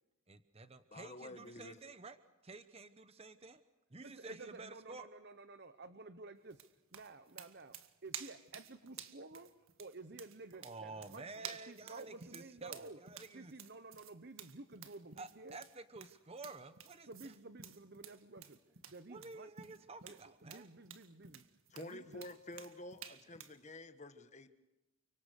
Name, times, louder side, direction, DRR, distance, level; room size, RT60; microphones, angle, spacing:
voice 1, 0.3-2.2 2.4-3.6 3.9-5.1 10.6-13.5 15.2-17.3 19.1-20.7, right 3 dB, 25° right, 11 dB, 1.0 m, -51 dB
voice 2, 0.9-1.8 21.7-24.5, left 1 dB, 30° left, 9 dB, 1.5 m, -50 dB
voice 3, 4.0-6.6 6.9-9.5 9.8-13.0 13.3-15.6 17.0-18.6 18.9-19.5 20.0-21.4 21.7-22.2, right 3 dB, 50° right, 11 dB, 1.0 m, -52 dB
sound 1, 6.5-23.6, right 9 dB, 65° right, 1.8 m, -52 dB
30.0 x 25.5 x 6.5 m, 0.99 s
head